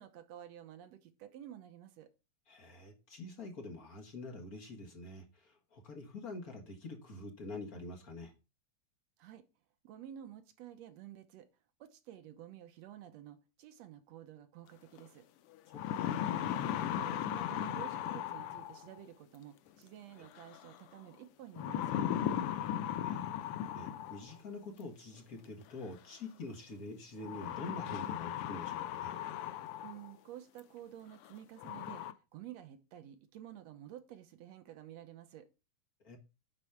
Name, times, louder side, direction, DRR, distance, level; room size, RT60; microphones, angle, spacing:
voice 1, 0.0-2.1 9.2-9.4 9.8-11.5 11.8-15.2 17.0-22.1 29.8-32.0 32.3-35.5, right 11 dB, 70° right, 2.0 m, -51 dB
voice 2, 2.5-8.3 15.7-16.3 22.5-29.1 36.0-36.2, left 2 dB, 40° left, 1.5 m, -46 dB
sound 1, 15.0-15.1 15.5-18.9 20.4-20.8 21.6-24.4 25.6-25.7 27.2-30.1 30.6-30.7 31.2-31.3 31.6-32.1, left 10 dB, 90° left, 1.2 m, -37 dB
10.0 x 4.1 x 5.8 m
omnidirectional pair, 3.3 m